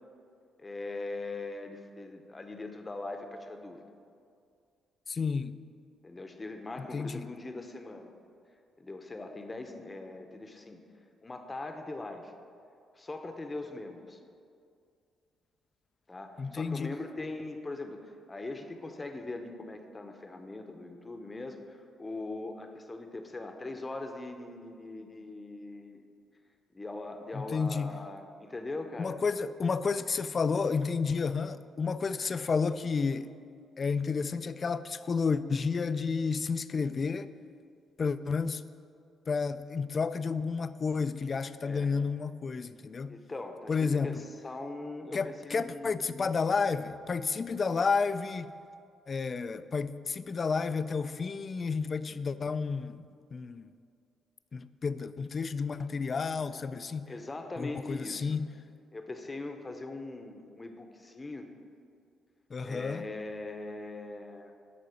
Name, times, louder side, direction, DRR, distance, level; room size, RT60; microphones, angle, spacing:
voice 1, 0.6-3.8 6.0-8.1 8.8-10.8 11.2-12.3 12.9-14.2 16.1-26.0 26.7-29.2 41.6-41.9 43.1-46.3 52.1-52.2 57.1-58.4 58.9-61.5 62.6-64.5, left 2 dB, 20° left, 5 dB, 0.8 m, -41 dB
voice 2, 5.1-5.5 6.9-7.3 16.4-17.0 27.3-27.9 29.0-33.3 33.8-37.3 38.0-38.7 39.3-43.2 43.7-44.1 45.1-48.5 49.1-53.0 53.3-53.7 54.5-57.1 57.6-58.5 62.5-63.0, left 5 dB, 40° left, 13 dB, 0.3 m, -31 dB
11.0 x 3.9 x 6.4 m, 2.4 s
cardioid pair, 90°, 0 cm